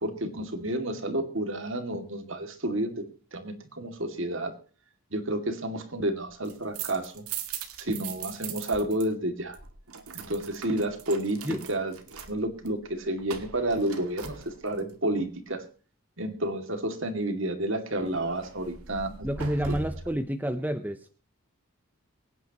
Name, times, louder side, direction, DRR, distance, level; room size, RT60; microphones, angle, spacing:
voice 1, 0.0-3.1 3.3-4.5 5.1-7.3 7.8-9.6 10.1-15.6 16.2-19.3 19.7-19.8, right 1 dB, 60° right, 6 dB, 2.4 m, -30 dB
sound 1, 6.3-9.1 9.3-14.9 18.0-20.2, right 6 dB, 80° right, 2.0 m, -40 dB
voice 2, 19.2-21.0, right 1 dB, 10° right, 8 dB, 0.7 m, -29 dB
24.0 x 9.8 x 3.0 m, 0.38 s
head